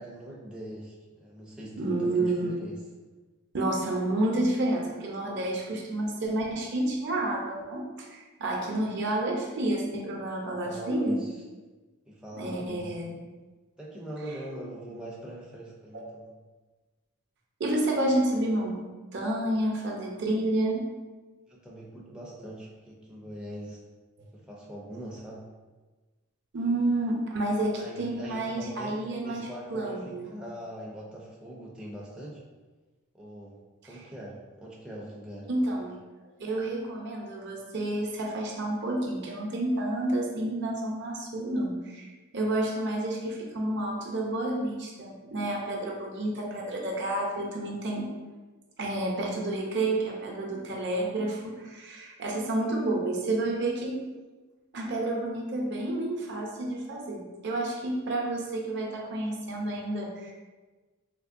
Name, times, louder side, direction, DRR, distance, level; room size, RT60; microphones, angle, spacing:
voice 1, 0.0-2.8 10.4-11.4 12.1-13.0 13.8-16.3 21.5-23.8 24.3-25.5 27.7-32.4 33.1-35.5, right 1 dB, 5° right, -5 dB, 0.4 m, -42 dB
voice 2, 1.8-2.5 3.5-11.2 12.3-13.1 15.9-16.0 17.6-18.8 19.1-20.8 26.5-30.2 35.5-35.9 36.4-42.1 42.3-48.0 48.8-54.0 54.7-60.3, right 1 dB, 55° right, -1 dB, 0.6 m, -30 dB
3.6 x 2.8 x 2.5 m, 1.3 s
head